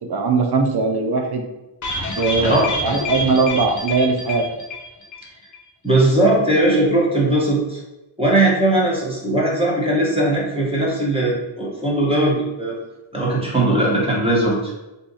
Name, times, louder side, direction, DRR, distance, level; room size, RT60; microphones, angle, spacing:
voice 1, 0.0-1.4 2.2-4.4, right 4 dB, 55° right, 4 dB, 0.6 m, -20 dB
sound 1, 1.8-5.3 5.5-5.6 5.9-6.0, left 1 dB, 40° left, 0.5 m, -27 dB
voice 2, 5.8-7.8 8.2-12.8 13.1-14.6, right 1 dB, 10° right, -4 dB, 1.0 m, -19 dB
2.6 x 2.4 x 3.9 m, 1.0 s
wide cardioid pair, 95°, 46 cm